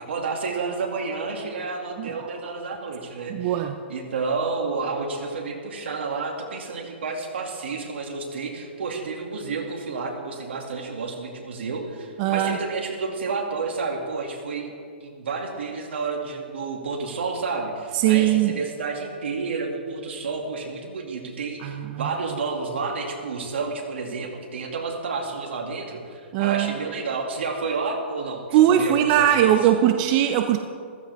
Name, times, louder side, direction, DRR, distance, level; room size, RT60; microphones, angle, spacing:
voice 1, 0.0-14.7 15.0-29.7, right 4 dB, 80° right, 2 dB, 2.4 m, -30 dB
voice 2, 3.3-3.7 12.2-12.6 17.9-18.6 21.6-22.1 26.3-26.7 28.5-30.6, right 11 dB, 40° right, 7 dB, 0.6 m, -20 dB
15.0 x 14.5 x 3.6 m, 2.2 s
hypercardioid pair, 135°, 6 cm